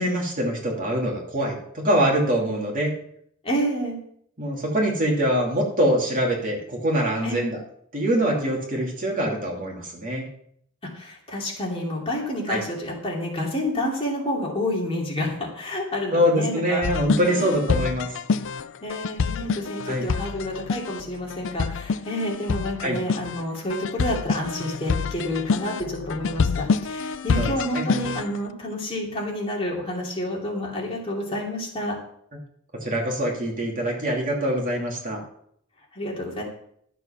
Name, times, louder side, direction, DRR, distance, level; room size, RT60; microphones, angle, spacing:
voice 1, 0.0-2.9 4.4-7.6 7.9-10.2 12.5-12.6 16.1-18.1 19.9-20.1 22.8-23.0 27.4-27.5 27.7-27.8 32.8-35.2, equal, 40° right, -1 dB, 2.8 m, -24 dB
voice 2, 3.4-4.0 7.2-7.4 10.9-16.8 17.1-17.6 18.8-31.9 35.9-36.4, left 1 dB, 25° left, -2 dB, 2.8 m, -29 dB
sound 1, 16.8-28.4, left 5 dB, 60° left, 0.5 m, -27 dB
12.0 x 6.9 x 5.8 m, 0.68 s
head